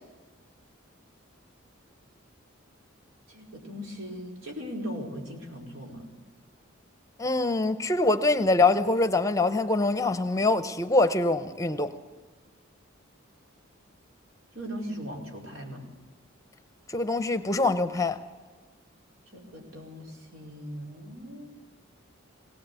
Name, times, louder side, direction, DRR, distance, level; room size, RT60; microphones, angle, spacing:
voice 1, 3.3-6.1 14.5-15.9 19.3-21.5, equal, 85° right, 4.9 m, -39 dB
voice 2, 7.2-11.9 16.9-18.2, left 2 dB, 15° left, 0.7 m, -24 dB
20.5 x 18.0 x 8.3 m
head